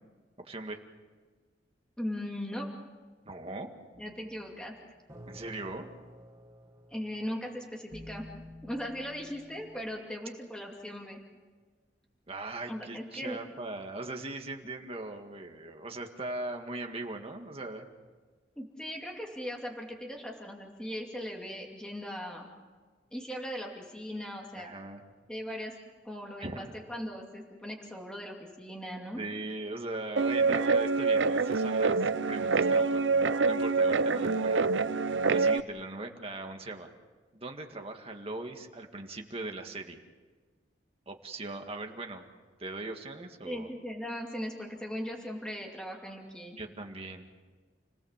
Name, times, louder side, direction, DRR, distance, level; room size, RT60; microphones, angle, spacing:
voice 1, 0.4-0.8 3.3-3.7 5.3-5.9 12.3-17.9 24.5-25.0 26.4-26.7 29.1-32.0 32.3-33.0 33.5-34.6 35.3-36.9 37.3-40.0 41.1-42.2 42.6-43.7 46.6-47.3, right 2 dB, 30° right, 4 dB, 1.9 m, -39 dB
voice 2, 2.0-2.7 4.0-4.7 6.9-8.2 8.6-11.2 12.7-13.4 18.6-22.5 23.1-24.7 25.3-25.7 26.0-29.2 34.1-34.5 43.4-46.6, equal, 5° left, 0 dB, 2.6 m, -39 dB
sound 1, 3.9-9.8, equal, 15° right, 1.6 m, -51 dB
Guitar, 30.2-35.6, right 4 dB, 85° right, 0.6 m, -26 dB
30.0 x 18.5 x 7.4 m, 1.4 s
head